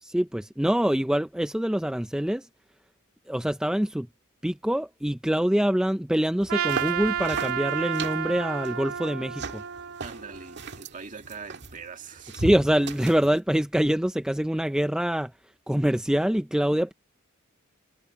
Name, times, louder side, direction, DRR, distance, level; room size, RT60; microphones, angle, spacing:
voice 1, 0.0-2.5 3.3-4.1 4.4-9.6 12.3-15.3 15.7-16.9, equal, 5° right, 0.4 m, -25 dB
sound 1, 6.4-13.4, right 3 dB, 55° right, 1.7 m, -38 dB
Trumpet, 6.5-10.8, right 8 dB, 85° right, 2.7 m, -31 dB
voice 2, 10.0-12.4, right 5 dB, 40° right, 1.8 m, -42 dB
head